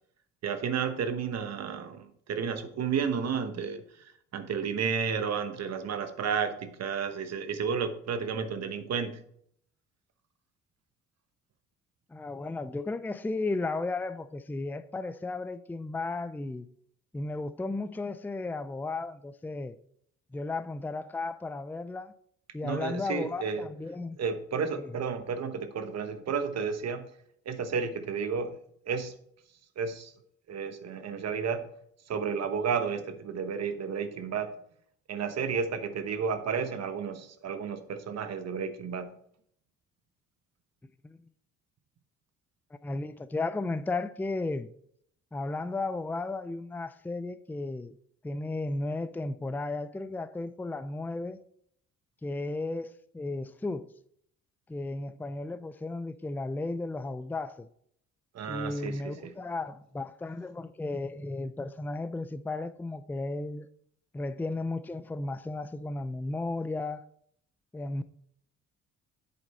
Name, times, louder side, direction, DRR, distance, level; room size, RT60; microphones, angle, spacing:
voice 1, 0.4-9.2 22.6-23.7 24.2-27.1 27.4-28.6 28.9-29.2 29.8-30.1 30.5-31.7 32.1-34.5 35.1-39.2 58.3-59.3, right 6 dB, 60° right, 1.1 m, -32 dB
voice 2, 12.1-16.7 17.1-19.8 20.3-22.1 22.5-24.2 24.8-24.9 41.0-41.2 42.8-44.7 45.3-47.9 48.2-51.4 52.2-53.9 54.7-57.7 58.5-63.7 64.1-67.0 67.7-68.0, left 2 dB, 5° left, 0.4 m, -34 dB
8.3 x 7.1 x 4.2 m
cardioid pair, 90°, 30 cm